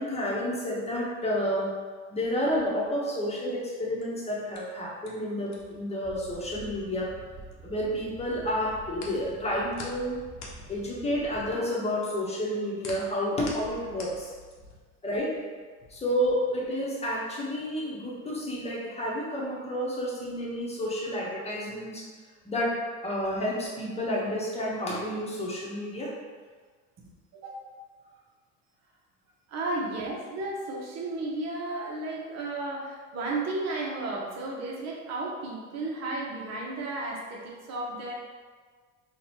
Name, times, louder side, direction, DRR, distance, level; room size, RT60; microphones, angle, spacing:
voice 1, 0.0-1.8 2.1-7.2 7.6-10.2 10.7-14.3 15.0-15.4 15.9-22.0 22.4-26.1, equal, 20° left, -4 dB, 1.0 m, -30 dB
sound 1, 3.8-8.0 8.3-14.9, left 3 dB, 50° left, 0.9 m, -47 dB
sound 2, 6.0-11.6, right 1 dB, 5° right, 0.4 m, -48 dB
voice 2, 27.3-27.6 29.5-38.1, right 2 dB, 45° right, -2 dB, 1.0 m, -33 dB
4.0 x 2.4 x 2.9 m, 1.5 s
supercardioid pair, 90°, 35 cm